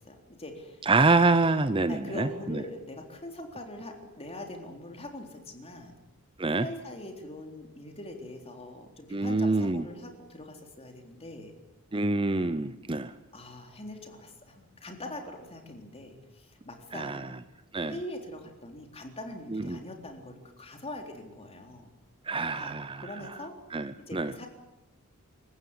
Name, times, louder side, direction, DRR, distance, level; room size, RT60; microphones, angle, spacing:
voice 1, 0.0-0.8 1.9-6.0 6.5-11.5 13.3-17.3 17.9-21.9 22.5-23.5 24.1-24.5, left 1 dB, 25° left, 3 dB, 3.8 m, -42 dB
voice 2, 0.9-2.6 6.4-6.7 9.1-9.8 11.9-13.1 16.9-17.3 17.7-18.0 19.5-19.8 22.3-23.0 23.7-24.3, right 3 dB, 25° right, 12 dB, 0.8 m, -26 dB
26.5 x 15.0 x 9.9 m, 0.99 s
head